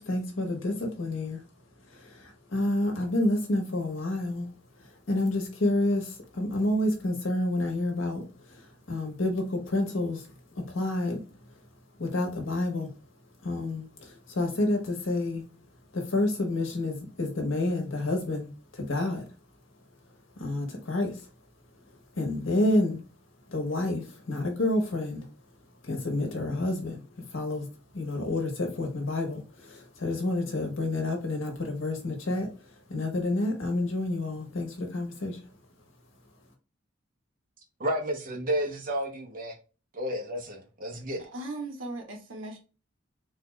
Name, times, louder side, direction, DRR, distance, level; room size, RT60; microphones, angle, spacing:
voice 1, 0.0-1.4 1.9-4.5 5.1-11.2 12.0-12.9 13.4-15.4 15.9-19.2 20.4-21.2 22.2-23.0 23.5-25.3 25.8-27.0 27.3-27.7 27.9-32.5 32.9-35.4, left 1 dB, 75° left, 1.3 m, -29 dB
voice 2, 37.8-39.5 39.9-41.3, equal, 45° right, 1.0 m, -31 dB
voice 3, 41.2-42.6, right 2 dB, 80° right, 1.2 m, -38 dB
4.0 x 2.6 x 3.2 m
head